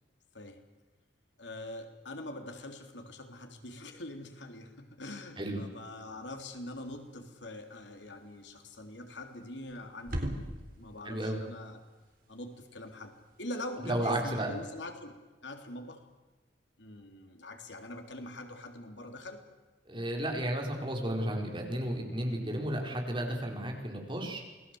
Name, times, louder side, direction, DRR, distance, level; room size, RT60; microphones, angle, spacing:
voice 1, 1.4-10.5 10.8-11.8 12.3-16.0 16.8-19.4, left 1 dB, 80° left, 5 dB, 3.4 m, -44 dB
sound 1, 6.0-14.9, equal, 55° right, 3.8 m, -46 dB
voice 2, 11.0-11.4 13.8-14.5 19.9-24.4, right 1 dB, 30° right, 1 dB, 4.8 m, -33 dB
28.0 x 20.0 x 7.9 m, 1.2 s
head